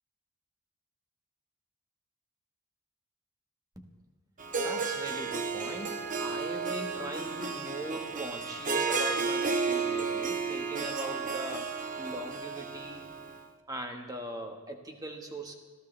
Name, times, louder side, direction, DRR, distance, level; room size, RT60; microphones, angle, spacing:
Harp, 4.4-13.4, right 4 dB, 35° right, 0.9 m, -33 dB
voice 1, 4.6-13.1 13.7-15.6, right 1 dB, 15° right, 3 dB, 1.6 m, -40 dB
25.5 x 15.5 x 3.4 m, 1.3 s
head